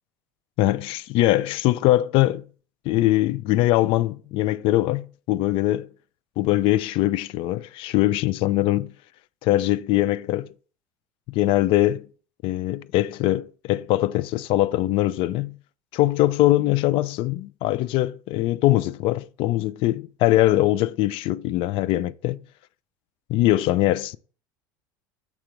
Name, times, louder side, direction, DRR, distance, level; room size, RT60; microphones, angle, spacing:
voice 1, 0.6-2.4 2.9-5.9 6.4-8.9 9.4-10.5 11.3-12.1 12.4-15.5 15.9-22.4 23.3-24.2, left 15 dB, 55° left, 0.4 m, -22 dB
7.2 x 3.7 x 4.6 m
hypercardioid pair, 80°, 11 cm